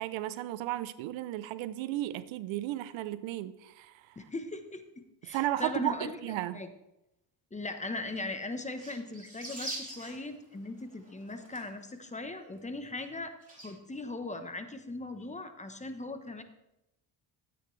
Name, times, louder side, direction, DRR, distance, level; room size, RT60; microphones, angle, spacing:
voice 1, 0.0-4.3 5.3-6.6, right 14 dB, 85° right, 15 dB, 0.7 m, -34 dB
voice 2, 4.2-4.8 5.2-6.2 6.5-6.7 7.5-16.4, left 2 dB, 15° left, 8 dB, 1.1 m, -39 dB
sound 1, 8.2-8.4 8.7-11.9 12.2-12.3 12.6-12.7 13.0-13.1 13.4-13.7, right 2 dB, 20° right, 4.2 m, -43 dB
13.0 x 8.8 x 3.3 m, 0.91 s
cardioid pair, 95°, 45 cm